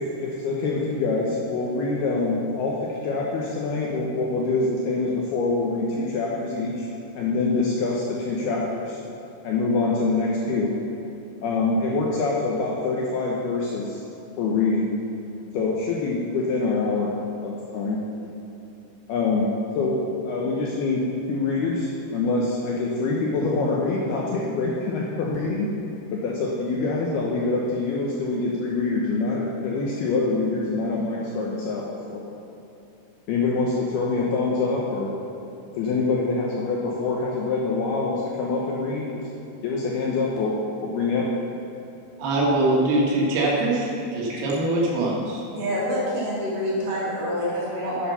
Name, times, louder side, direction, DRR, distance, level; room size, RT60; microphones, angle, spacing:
voice 1, 0.0-6.9 7.2-9.0 9.4-10.7 11.4-14.0 14.4-14.9 15.5-17.1 17.4-18.0 19.1-19.5 19.8-20.0 20.3-25.7 26.1-31.8 32.1-32.2 33.3-35.1 35.8-39.2 39.6-40.5 40.8-41.2, left 3 dB, 75° left, -3 dB, 2.4 m, -25 dB
voice 2, 42.2-45.4, right 2 dB, 80° right, -4 dB, 4.5 m, -23 dB
voice 3, 45.5-48.1, equal, 55° right, -7 dB, 4.2 m, -27 dB
10.5 x 9.2 x 5.7 m, 2.9 s
omnidirectional pair, 5.7 m